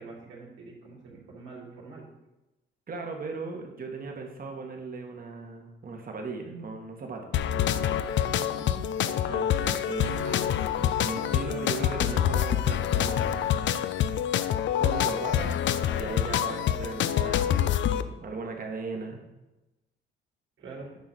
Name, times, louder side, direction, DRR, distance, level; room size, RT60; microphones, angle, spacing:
voice 1, 0.0-2.1 8.2-8.8 20.6-20.9, right 3 dB, 80° right, -3 dB, 3.3 m, -45 dB
voice 2, 2.9-7.4 9.2-13.5 14.8-15.6 15.9-19.2, right 4 dB, 45° right, 2 dB, 2.0 m, -37 dB
sound 1, 7.3-18.0, left 10 dB, 70° left, 0.6 m, -26 dB
9.4 x 5.1 x 6.3 m, 1.0 s
cardioid pair, 90°, 20 cm